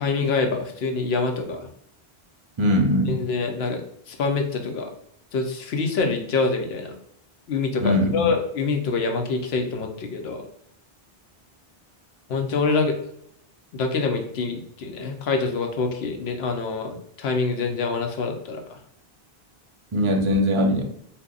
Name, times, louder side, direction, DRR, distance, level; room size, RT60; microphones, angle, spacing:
voice 1, 0.0-1.7 3.1-3.8 4.1-4.9 5.3-6.9 7.5-10.4 12.3-13.0 13.7-18.6, left 4 dB, 85° left, 4 dB, 0.9 m, -25 dB
voice 2, 2.6-3.2 7.8-8.3 19.9-20.8, left 1 dB, 40° right, 3 dB, 0.5 m, -21 dB
2.8 x 2.3 x 3.7 m, 0.72 s
omnidirectional pair, 1.0 m